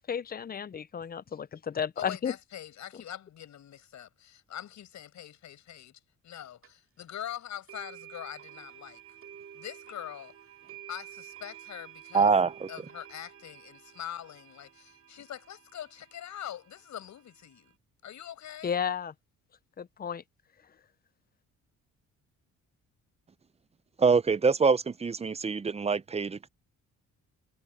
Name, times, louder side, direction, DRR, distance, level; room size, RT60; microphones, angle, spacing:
voice 1, 0.1-2.3 18.6-19.1 19.8-20.2, left 7 dB, 30° left, 0.6 m, -33 dB
voice 2, 2.0-9.0 9.5-10.3 10.9-12.3 12.7-17.7 18.0-18.8, left 10 dB, 65° left, 5.9 m, -43 dB
sound 1, 6.6-6.7 7.7-17.7, right 10 dB, 45° right, 2.5 m, -51 dB
voice 3, 12.1-12.7 24.0-26.5, right 5 dB, 20° right, 0.6 m, -25 dB
cardioid pair, 90°, 30 cm